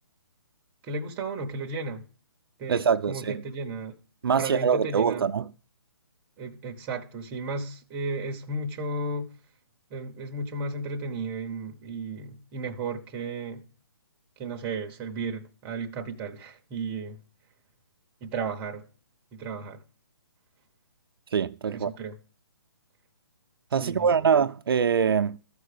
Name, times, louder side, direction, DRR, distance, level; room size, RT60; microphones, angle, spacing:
voice 1, 0.8-2.1 2.6-4.0 4.3-5.2 6.4-9.3 9.9-13.6 14.4-17.2 18.2-18.8 19.3-19.8 21.7-22.2 23.8-24.3, right 3 dB, 15° right, 0.7 m, -34 dB
voice 2, 2.7-3.3 4.2-5.5 21.3-21.9 23.7-25.4, right 6 dB, 65° right, 0.4 m, -24 dB
13.5 x 4.7 x 6.6 m
hypercardioid pair, 165°, 14 cm